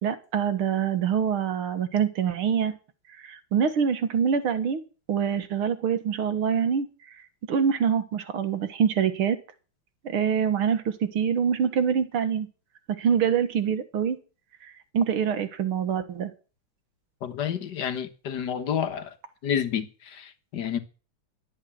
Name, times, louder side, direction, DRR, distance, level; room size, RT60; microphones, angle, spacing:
voice 1, 0.0-2.7 3.2-4.8 5.1-6.9 7.5-9.4 10.0-12.5 13.0-14.2 14.9-16.3, right 7 dB, 90° right, 2.4 m, -25 dB
voice 2, 17.2-19.1 19.4-20.8, left 8 dB, 60° left, 1.8 m, -29 dB
12.5 x 8.3 x 8.6 m
omnidirectional pair, 2.3 m